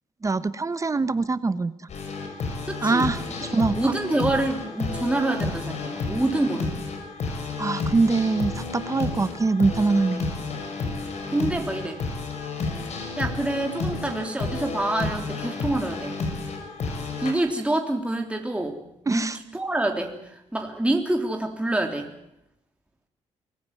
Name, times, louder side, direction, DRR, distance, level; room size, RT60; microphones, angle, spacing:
voice 1, 0.2-1.7 2.8-3.8 7.6-10.2 19.1-19.4, right 3 dB, 25° right, 14 dB, 1.0 m, -23 dB
sound 1, 1.9-17.3, left 3 dB, 65° left, 6.1 m, -31 dB
voice 2, 2.7-3.1 3.5-6.8 11.3-12.0 13.2-16.2 17.2-18.8 19.1-22.1, right 2 dB, 10° right, 3 dB, 3.3 m, -27 dB
24.5 x 15.5 x 9.5 m, 0.83 s
cardioid pair, 85°, 12 cm